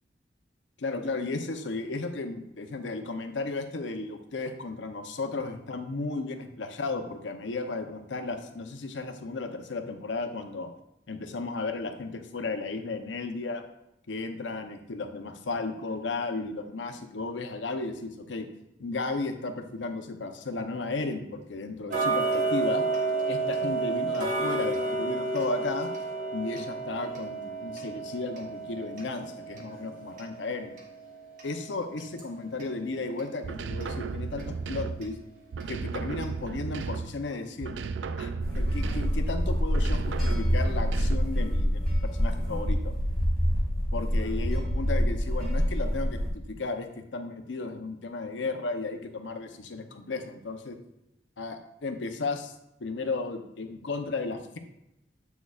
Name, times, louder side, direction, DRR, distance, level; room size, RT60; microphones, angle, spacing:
voice 1, 0.8-10.7 11.1-13.6 14.1-18.5 18.8-22.8 23.3-25.9 26.3-30.7 31.4-35.2 35.7-37.7 38.2-42.9 43.9-50.8 51.4-52.5 52.8-54.6, left 3 dB, 85° left, 6 dB, 0.7 m, -34 dB
Tick-tock, 21.9-32.7 33.2-33.3 33.8-33.9 34.4-34.5 35.0-35.1 35.6-35.7 36.2-36.3 36.8-36.9, right 3 dB, 45° right, 1.2 m, -31 dB
sound 1, 33.4-35.2 35.5-37.3 37.6-39.3 39.7-41.4, right 4 dB, 85° right, 0.4 m, -35 dB
sound 2, 38.4-46.3, equal, ahead, 2.3 m, -26 dB
8.1 x 6.3 x 2.4 m, 0.87 s
head